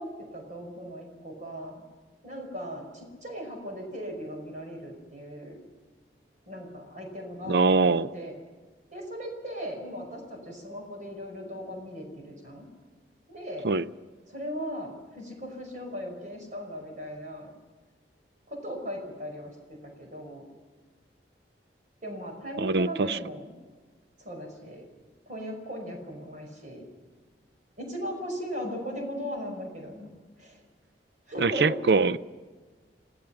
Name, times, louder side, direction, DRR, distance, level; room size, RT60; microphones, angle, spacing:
voice 1, 0.0-1.8 2.2-5.6 6.5-8.3 8.9-12.7 13.3-13.7 14.3-17.5 18.5-20.5 22.0-23.5 24.2-24.8 25.3-26.8 27.8-30.1 30.4-30.6 31.3-31.8, equal, 45° right, 2 dB, 5.5 m, -38 dB
voice 2, 7.5-8.1 13.6-13.8 22.6-23.2 31.4-32.2, right 4 dB, 65° right, 15 dB, 0.5 m, -23 dB
28.0 x 17.5 x 5.8 m, 1.4 s
head